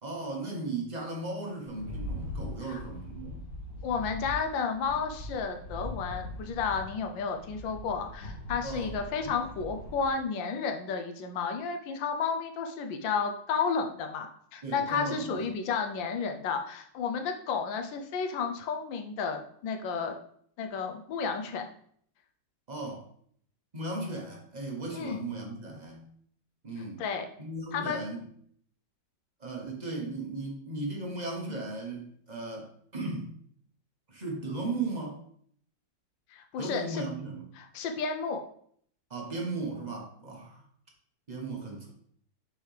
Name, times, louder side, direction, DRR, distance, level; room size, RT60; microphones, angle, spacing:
voice 1, 0.0-3.4 8.6-8.9 14.6-15.5 22.7-23.0 23.7-26.1 26.6-27.0 27.4-28.3 29.4-33.4 34.1-35.2 36.6-37.5 39.1-40.6 41.3-41.9, right 2 dB, 30° right, 0 dB, 1.0 m, -36 dB
Rattle, 1.7-10.1, left 1 dB, 65° left, 2.6 m, -41 dB
voice 2, 3.8-20.1 20.6-21.7 24.9-25.3 27.0-27.3 27.7-28.0 36.3-37.0 37.6-38.4, left 5 dB, 85° left, 5 dB, 1.4 m, -32 dB
6.3 x 4.7 x 3.3 m, 0.63 s
omnidirectional pair, 2.0 m